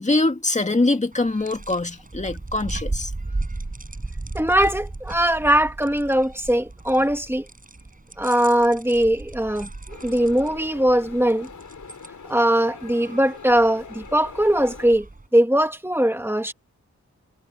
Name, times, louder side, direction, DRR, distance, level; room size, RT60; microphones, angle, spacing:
voice 1, 0.0-3.1, left 2 dB, 25° left, 2.2 m, -23 dB
sound 1, 1.1-15.3, right 2 dB, 25° right, 6.3 m, -36 dB
voice 2, 4.3-7.5 8.2-11.5 12.3-16.5, right 1 dB, 10° right, 1.4 m, -21 dB
sound 2, 9.9-14.9, left 5 dB, 85° left, 7.5 m, -42 dB
wide cardioid pair, 115°, 30 cm